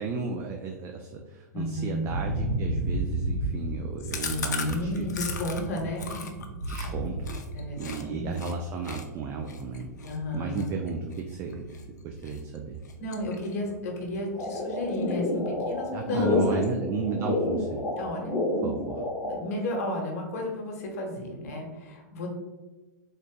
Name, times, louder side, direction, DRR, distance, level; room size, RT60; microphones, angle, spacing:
voice 1, 0.0-5.1 6.7-7.3 7.8-9.9 10.3-12.8 15.9-17.8 18.6-19.0, right 5 dB, 25° right, 3 dB, 0.3 m, -34 dB
voice 2, 1.5-2.1 4.2-6.6 7.5-8.4 10.0-10.7 13.0-16.6 18.0-18.5 19.3-22.3, left 1 dB, 55° left, 0 dB, 1.0 m, -33 dB
sound 1, 2.1-18.3 18.5-18.9, right 1 dB, 75° right, 0.9 m, -35 dB
Chewing mastication, 4.1-8.0 8.3-8.5 8.8-11.8 12.2-12.6 12.8-13.7 14.0-14.1 14.4-14.5 14.8-15.4, left 5 dB, 70° left, 0.5 m, -38 dB
sound 2, 14.3-19.4, left 2 dB, 20° left, 0.9 m, -29 dB
3.7 x 2.5 x 3.6 m, 1.2 s
figure-of-eight pair, 100°, 10 cm